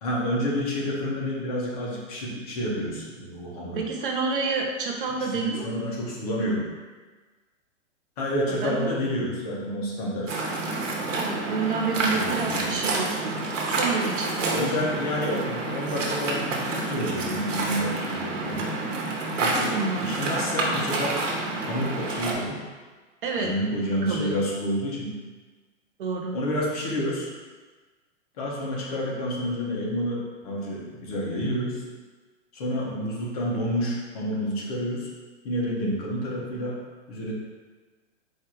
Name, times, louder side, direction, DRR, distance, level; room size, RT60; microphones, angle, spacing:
voice 1, 0.0-3.8 5.2-6.7 8.2-10.4 12.1-12.8 14.5-18.8 19.3-21.2 21.7-22.7 23.4-25.2 26.3-27.3 28.4-31.8 32.5-35.1 35.4-36.8 37.1-37.3, equal, 30° left, -3 dB, 0.8 m, -29 dB
voice 2, 3.8-5.7 8.5-8.9 11.1-14.9 15.2-15.4 19.7-20.1 23.2-23.5 24.0-24.4 26.0-26.4, right 4 dB, 45° right, 0 dB, 0.6 m, -29 dB
Waves surf, 10.3-22.3, right 2 dB, 90° right, 1.1 m, -28 dB
4.5 x 2.4 x 4.4 m, 1.3 s
hypercardioid pair, 160°, 37 cm